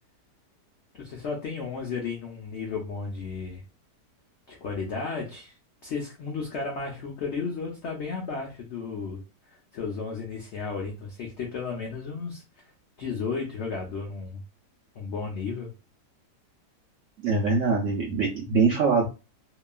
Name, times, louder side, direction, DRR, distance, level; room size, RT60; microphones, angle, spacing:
voice 1, 0.9-3.6 4.5-5.5 5.8-9.2 9.7-12.6 13.0-14.4 15.0-15.7, left 4 dB, 80° left, 0 dB, 0.6 m, -33 dB
voice 2, 17.2-19.1, right 4 dB, 75° right, -2 dB, 0.7 m, -23 dB
2.8 x 2.3 x 2.2 m, 0.31 s
omnidirectional pair, 1.8 m